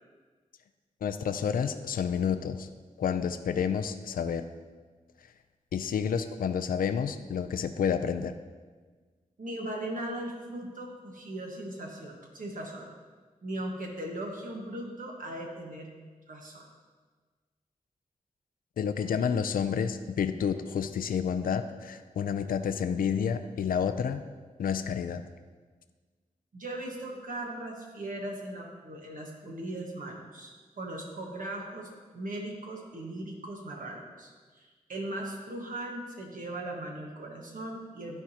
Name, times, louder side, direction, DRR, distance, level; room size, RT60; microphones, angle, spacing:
voice 1, 1.0-2.7 3.0-4.4 5.7-8.3 18.8-24.2 24.6-25.2, left 7 dB, 80° left, 10 dB, 0.4 m, -29 dB
voice 2, 9.4-12.9 13.4-15.9 16.3-16.7 26.5-38.2, right 1 dB, 70° right, 0 dB, 1.4 m, -38 dB
12.0 x 4.5 x 2.8 m, 1.4 s
cardioid pair, 45°, 15 cm